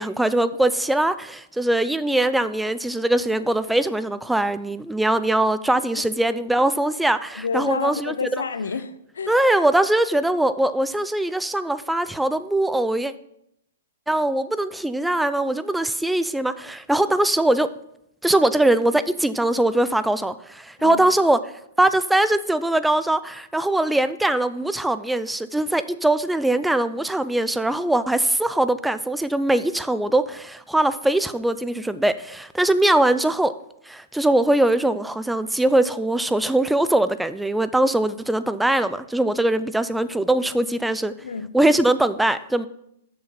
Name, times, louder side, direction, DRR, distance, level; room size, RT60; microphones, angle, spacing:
voice 1, 0.0-8.3 9.3-13.1 14.1-17.7 18.2-21.4 21.8-33.5 33.9-41.1 41.5-42.7, right 1 dB, 5° right, 0.4 m, -21 dB
voice 2, 7.3-9.4 20.8-21.1 41.2-41.5, left 5 dB, 80° left, 0.6 m, -29 dB
6.7 x 6.4 x 5.6 m
hypercardioid pair, 120°, 0 cm